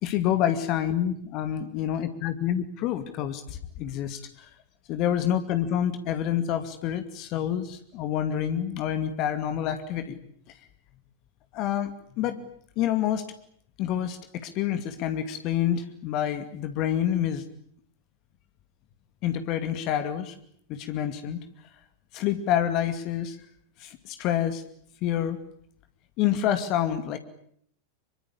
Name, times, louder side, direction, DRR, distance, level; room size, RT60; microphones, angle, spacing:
voice 1, 0.0-4.5 4.9-10.2 11.5-12.4 12.8-13.2 13.8-17.4 19.2-20.4 20.7-21.4 22.1-23.4 23.8-24.6 25.0-25.4 26.2-27.2, left 10 dB, 40° left, 9 dB, 2.4 m, -27 dB
26.0 x 24.0 x 8.6 m, 0.65 s
figure-of-eight pair, 90°, 0 cm